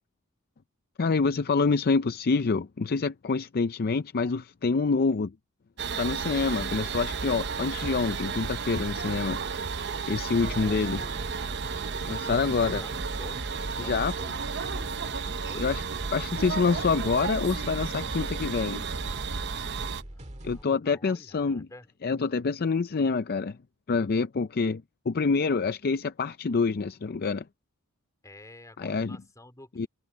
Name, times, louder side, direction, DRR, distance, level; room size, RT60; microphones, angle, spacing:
voice 1, 1.0-5.3 6.0-9.4 10.1-11.0 12.1-12.8 13.8-14.1 15.6-15.8 16.1-18.9 20.4-21.7 22.0-23.6 23.9-27.4 28.8-29.2 29.8-29.9, left 4 dB, 45° left, 0.5 m, -26 dB
sound 1, 5.8-20.0, right 5 dB, 55° right, 0.8 m, -33 dB
sound 2, 10.3-20.6, right 1 dB, 35° right, 1.8 m, -42 dB
voice 2, 10.5-11.3 12.6-14.9 15.5-15.7 20.1-21.9 28.2-29.9, left 1 dB, 15° left, 3.2 m, -49 dB
head